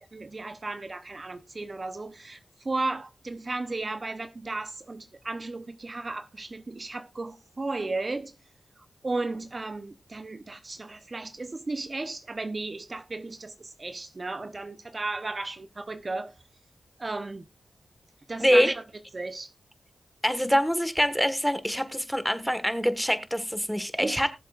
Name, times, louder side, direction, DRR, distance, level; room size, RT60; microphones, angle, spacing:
voice 1, 0.1-8.3 8.8-16.3 17.0-17.5 18.3-18.8 19.1-19.5 24.0-24.3, right 3 dB, 40° right, 0.8 m, -34 dB
voice 2, 20.2-24.3, equal, ahead, 1.5 m, -24 dB
19.0 x 7.4 x 2.5 m
cardioid pair, 55°, 0 cm